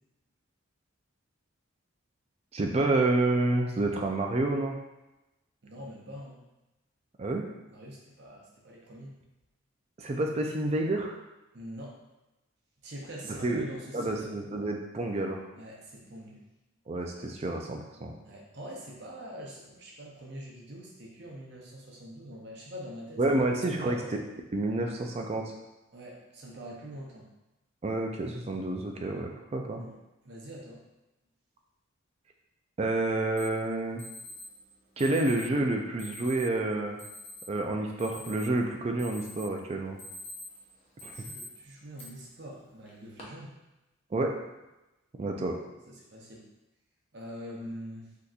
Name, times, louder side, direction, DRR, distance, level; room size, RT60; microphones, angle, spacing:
voice 1, 2.5-4.8 7.2-7.4 10.0-11.2 13.4-13.7 13.9-15.4 16.9-18.2 23.2-24.0 24.5-25.4 27.8-29.8 32.8-34.0 35.0-37.0 37.5-40.0 41.0-41.2 44.1-44.3 45.2-45.5, right 2 dB, 30° right, 2 dB, 0.3 m, -29 dB
voice 2, 5.6-6.4 7.7-9.2 11.5-12.0 12.8-14.3 15.5-16.4 18.2-24.1 25.9-27.3 29.7-29.9 30.2-30.8 41.0-43.6 45.9-46.4 47.1-48.1, equal, 50° right, -3 dB, 0.7 m, -44 dB
Alarm, 33.4-33.5 34.0-34.5 35.0-35.5 36.0-36.5 37.0-37.4 37.8-38.6 39.0-39.5 39.8-40.6 41.0-41.4 42.0-42.1 42.9-43.2, left 1 dB, 30° left, 0.5 m, -45 dB
3.6 x 2.7 x 2.4 m, 0.99 s
head